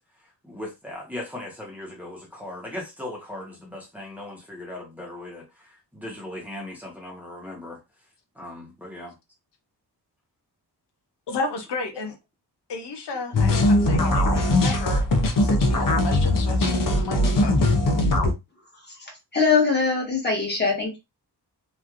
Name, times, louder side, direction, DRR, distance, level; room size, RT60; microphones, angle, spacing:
voice 1, 0.4-7.8 8.4-9.1, left 1 dB, 5° right, 1.0 m, -38 dB
voice 2, 11.3-12.2 12.7-15.0 15.4-17.7, left 3 dB, 90° left, 0.8 m, -33 dB
sound 1, 13.3-18.3, left 1 dB, 55° left, 0.7 m, -20 dB
voice 3, 19.3-21.0, left 4 dB, 25° left, 1.4 m, -22 dB
3.0 x 2.5 x 2.5 m
wide cardioid pair, 125°, 40 cm